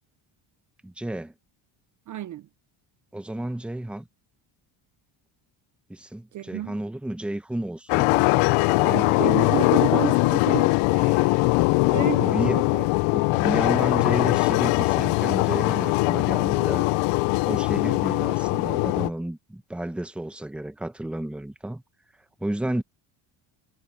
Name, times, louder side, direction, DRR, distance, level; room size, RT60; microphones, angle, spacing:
voice 1, 0.8-1.3 3.1-4.1 5.9-8.3 12.2-12.6 13.1-16.9 17.4-21.8 22.4-22.8, right 1 dB, ahead, 0.8 m, -32 dB
voice 2, 2.1-2.5 6.3-6.8 8.8-11.5 11.9-12.9, right 14 dB, 40° right, 0.5 m, -31 dB
sound 1, 7.9-19.1, left 24 dB, 85° left, 0.6 m, -21 dB
cardioid pair, 150°, 49 cm